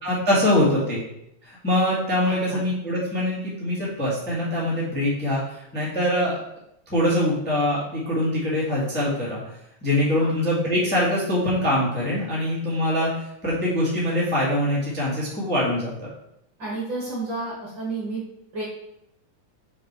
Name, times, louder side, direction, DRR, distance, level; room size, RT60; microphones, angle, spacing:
voice 1, 0.0-1.0 1.4-6.4 6.9-9.4 9.8-13.1 13.4-16.1, left 1 dB, 5° left, -7 dB, 1.5 m, -23 dB
voice 2, 2.3-2.6 10.2-10.3 16.6-18.2 18.5-18.6, right 3 dB, 45° right, -5 dB, 2.0 m, -31 dB
5.2 x 4.9 x 4.6 m, 0.79 s
omnidirectional pair, 3.5 m